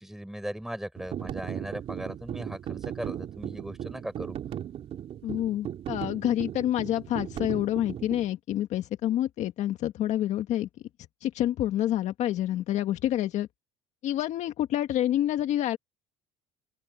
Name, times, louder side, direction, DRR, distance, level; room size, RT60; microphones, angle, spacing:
voice 1, 0.0-4.4, right 1 dB, 5° right, 5.4 m, -38 dB
sound 1, 1.0-8.3, right 10 dB, 40° right, 2.8 m, -37 dB
voice 2, 5.2-10.7 11.2-13.5 14.0-15.8, left 12 dB, 50° left, 1.7 m, -28 dB
open air
supercardioid pair, 120°, 15 cm